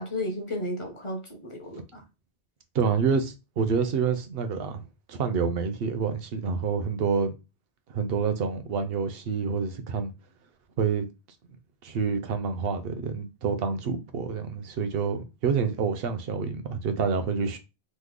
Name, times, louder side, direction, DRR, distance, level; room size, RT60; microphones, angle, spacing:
voice 1, 0.0-2.0, left 1 dB, 35° left, 0.6 m, -33 dB
voice 2, 2.7-4.8 5.1-7.3 7.9-10.1 10.8-11.1 11.8-17.6, right 5 dB, 75° right, 0.8 m, -27 dB
3.1 x 2.1 x 3.5 m
omnidirectional pair, 1.0 m